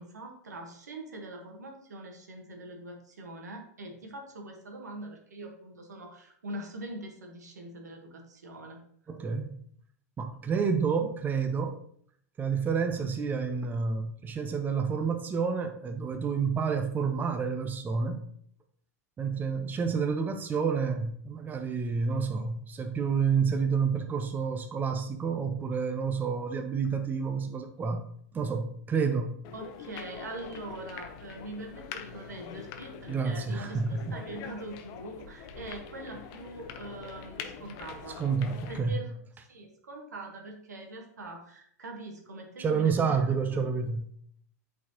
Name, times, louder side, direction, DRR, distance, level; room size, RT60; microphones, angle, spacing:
voice 1, 0.0-8.8 29.5-38.2 38.7-39.2 39.5-43.4, right 2 dB, 85° right, 2 dB, 1.3 m, -43 dB
voice 2, 9.1-9.6 10.2-11.8 12.4-18.2 19.2-28.0 28.3-29.4 33.1-34.1 38.2-39.0 42.6-44.1, right 5 dB, 20° right, 7 dB, 0.6 m, -29 dB
sound 1, 29.4-38.8, left 7 dB, 50° left, 0.7 m, -44 dB
8.3 x 4.2 x 2.9 m, 0.64 s
hypercardioid pair, 105°, 9 cm